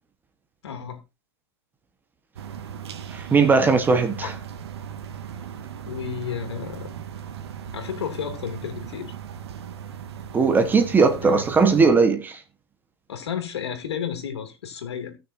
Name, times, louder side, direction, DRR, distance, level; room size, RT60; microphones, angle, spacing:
voice 1, 0.6-1.0 4.2-4.3 5.8-6.9 7.7-9.1 11.2-11.4 13.1-15.2, left 8 dB, 90° left, 2.8 m, -32 dB
sound 1, 2.4-11.9, right 8 dB, 80° right, 1.7 m, -38 dB
voice 2, 3.1-4.3 10.3-12.4, right 4 dB, 15° right, 1.3 m, -19 dB
18.0 x 6.5 x 2.7 m
hypercardioid pair, 135°, 14 cm